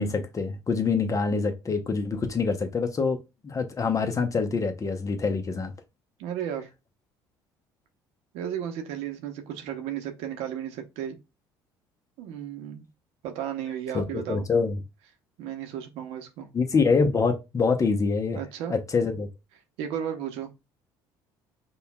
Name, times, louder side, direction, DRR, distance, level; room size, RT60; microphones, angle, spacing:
voice 1, 0.0-3.2 3.4-5.7 13.9-14.8 16.5-18.4 18.7-19.3, left 4 dB, 30° left, 0.8 m, -25 dB
voice 2, 6.2-6.7 8.3-11.2 12.2-12.8 13.2-14.5 15.4-16.5 18.3-18.8 19.8-20.5, right 9 dB, 75° right, 0.8 m, -34 dB
5.3 x 2.3 x 2.2 m
supercardioid pair, 75°, 11 cm